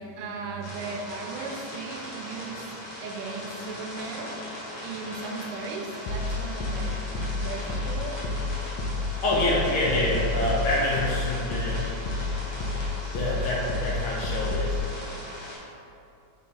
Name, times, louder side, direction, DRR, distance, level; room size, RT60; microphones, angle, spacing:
voice 1, 0.0-2.7 3.0-4.3 4.8-8.2, right 4 dB, 85° right, 2 dB, 2.2 m, -37 dB
sound 1, 0.6-15.5, equal, 40° left, 1.5 m, -39 dB
sound 2, 6.1-14.8, left 3 dB, 90° left, 2.3 m, -30 dB
voice 2, 9.2-11.8 12.5-12.8 13.1-14.8, left 1 dB, 70° left, -5 dB, 1.9 m, -27 dB
6.9 x 3.8 x 3.9 m, 2.6 s
omnidirectional pair, 3.7 m